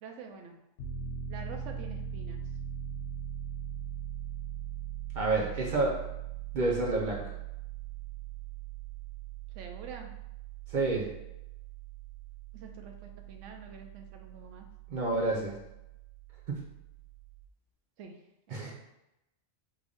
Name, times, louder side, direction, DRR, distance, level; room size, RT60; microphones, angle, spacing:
voice 1, 0.0-0.6 1.3-2.4 9.6-10.1 12.5-12.9 13.3-14.7 18.0-18.1 18.5-18.7, right 5 dB, 85° right, 4 dB, 0.9 m, -46 dB
Piano, 0.8-17.5, right 9 dB, 70° left, 0.9 m, -41 dB
voice 2, 5.1-6.0 6.5-7.2 10.7-11.1 14.9-15.6 18.5-18.7, right 2 dB, 50° right, -3 dB, 0.6 m, -29 dB
3.4 x 2.5 x 3.5 m, 0.89 s
omnidirectional pair, 1.2 m